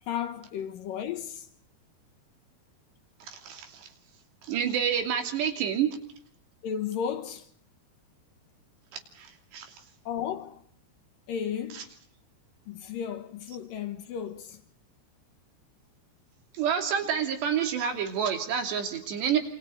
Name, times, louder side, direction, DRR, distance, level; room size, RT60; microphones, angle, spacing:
voice 1, 0.0-1.5 6.6-7.5 10.1-10.6 11.3-12.0 12.7-14.6, left 8 dB, 65° left, 2.5 m, -34 dB
voice 2, 3.3-3.9 4.4-5.9 9.2-9.7 16.6-19.4, right 8 dB, 80° right, 5.0 m, -28 dB
28.0 x 27.0 x 4.1 m
omnidirectional pair, 4.8 m